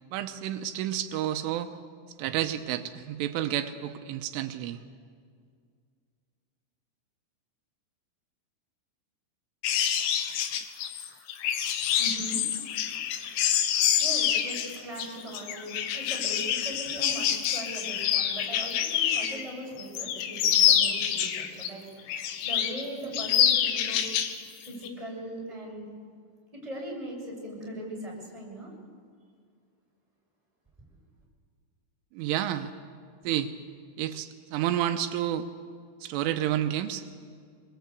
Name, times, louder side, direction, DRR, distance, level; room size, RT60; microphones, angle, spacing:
voice 1, 0.1-1.7 2.2-4.8 32.1-32.7 33.2-33.5 34.0-35.5 36.0-37.0, right 11 dB, 85° right, 7 dB, 3.4 m, -30 dB
sound 1, 9.6-19.5 19.8-21.7 22.1-22.8 23.1-24.4 24.7-24.9, left 9 dB, 85° left, 3.9 m, -27 dB
voice 2, 11.8-24.2 24.6-25.9 26.6-28.7, right 1 dB, 5° right, -3 dB, 6.2 m, -40 dB
25.0 x 22.0 x 8.2 m, 2.1 s
omnidirectional pair, 5.7 m